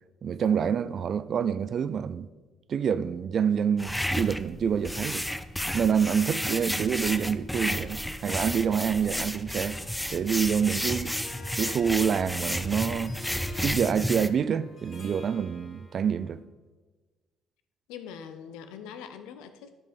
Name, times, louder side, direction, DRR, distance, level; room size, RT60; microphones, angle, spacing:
voice 1, 0.2-2.3 2.7-5.2 5.7-9.8 10.1-11.1 11.6-13.1 13.6-16.4, right 7 dB, 55° right, 0.4 m, -27 dB
sound 1, 3.8-14.3, equal, 5° left, 0.6 m, -32 dB
sound 2, 7.0-13.1, right 3 dB, 30° right, 1.8 m, -49 dB
Harp, 11.2-16.2, left 3 dB, 45° left, 2.5 m, -47 dB
voice 2, 17.9-19.8, left 7 dB, 80° left, 0.7 m, -43 dB
11.0 x 5.3 x 4.3 m
hypercardioid pair, 55°, 0 cm